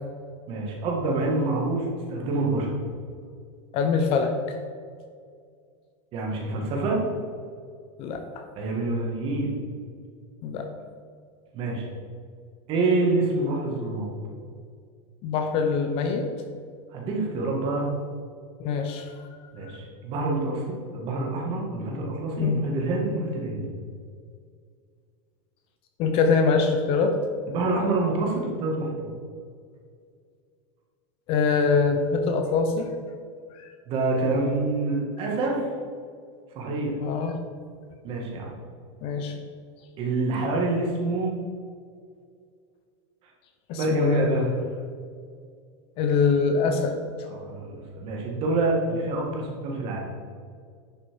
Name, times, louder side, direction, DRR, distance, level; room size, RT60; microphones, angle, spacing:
voice 1, 0.5-2.7 6.1-7.0 8.6-9.6 11.5-11.9 12.7-14.1 16.9-17.9 19.5-23.7 27.5-29.1 33.9-35.7 36.5-36.9 38.0-38.5 40.0-41.4 43.8-44.5 47.2-50.0, right 2 dB, 35° right, -1 dB, 2.2 m, -27 dB
voice 2, 3.7-4.3 8.0-8.4 10.4-10.7 15.2-16.3 18.6-19.1 22.4-22.7 26.0-27.2 31.3-32.9 33.5-33.6 37.0-37.4 39.0-39.3 43.7-44.3 46.0-47.0, left 5 dB, 35° left, 6 dB, 0.8 m, -23 dB
10.5 x 6.1 x 4.9 m, 2.1 s
supercardioid pair, 165°, 16 cm